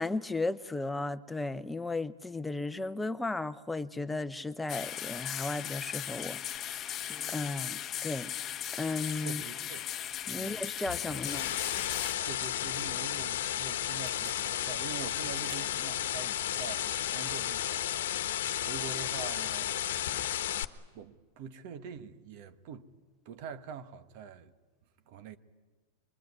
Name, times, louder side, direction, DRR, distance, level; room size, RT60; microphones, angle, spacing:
voice 1, 0.0-8.3 8.8-9.4 10.3-11.5, left 3 dB, 5° left, 0.8 m, -35 dB
sound 1, 4.7-12.1, left 10 dB, 30° left, 1.0 m, -37 dB
sound 2, 6.5-17.2, right 7 dB, 70° right, 3.1 m, -58 dB
voice 2, 9.2-9.9 10.3-10.7 12.2-20.3 20.9-22.9 23.2-24.5 25.1-25.4, right 7 dB, 55° right, 1.3 m, -45 dB
sound 3, 10.9-20.6, left 11 dB, 80° left, 1.1 m, -33 dB
23.5 x 23.0 x 9.7 m
supercardioid pair, 135°, 0 cm